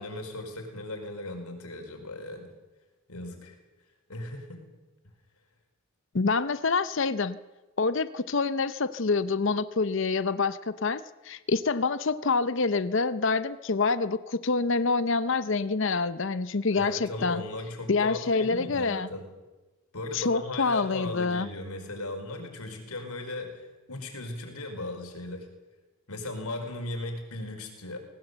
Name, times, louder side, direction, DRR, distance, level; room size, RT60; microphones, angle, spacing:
voice 1, 0.0-2.5 3.1-3.6 4.1-4.6 16.7-19.3 19.9-25.5 26.1-28.0, left 2 dB, 90° left, 4 dB, 4.7 m, -37 dB
voice 2, 6.1-7.4 7.8-17.4 17.9-19.1 20.1-21.5, left 4 dB, 55° left, 14 dB, 0.7 m, -26 dB
19.5 x 18.5 x 8.0 m, 1.2 s
head